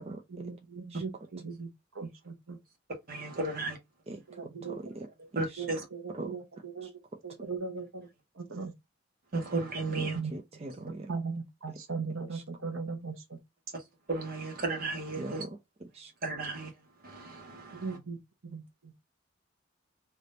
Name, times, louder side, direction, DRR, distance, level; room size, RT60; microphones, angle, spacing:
voice 1, 0.0-1.7 2.0-2.6 4.3-4.8 5.6-6.9 7.2-8.1 8.4-8.7 10.1-10.3 11.1-13.4 17.7-18.2 18.4-18.9, right 4 dB, 85° right, 0.9 m, -38 dB
voice 2, 3.1-3.8 5.3-5.8 9.3-10.2 14.1-15.4 16.2-16.7 17.0-18.0, right 3 dB, 50° right, 1.2 m, -34 dB
voice 3, 4.7-5.1 6.2-6.3 10.0-10.1 10.3-11.2 15.2-15.5 16.0-16.1, right 2 dB, 30° right, 0.5 m, -40 dB
3.4 x 3.0 x 2.5 m
head